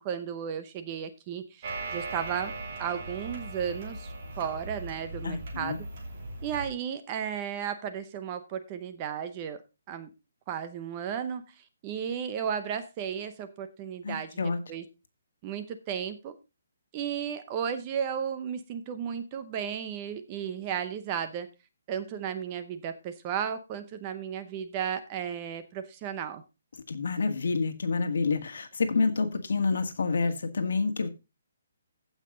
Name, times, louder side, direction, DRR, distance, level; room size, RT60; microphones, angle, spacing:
voice 1, 0.0-2.5 2.8-5.9 6.4-9.6 9.9-10.1 10.5-11.4 11.8-14.4 14.7-14.8 15.4-16.3 16.9-21.5 21.9-26.4, right 8 dB, 20° right, 0.7 m, -34 dB
sound 1, 1.6-6.7, right 2 dB, 35° right, 2.8 m, -39 dB
voice 2, 5.2-5.8 14.0-14.6 26.9-31.1, left 4 dB, 65° left, 1.9 m, -28 dB
15.0 x 5.8 x 3.8 m
hypercardioid pair, 175°, 0 cm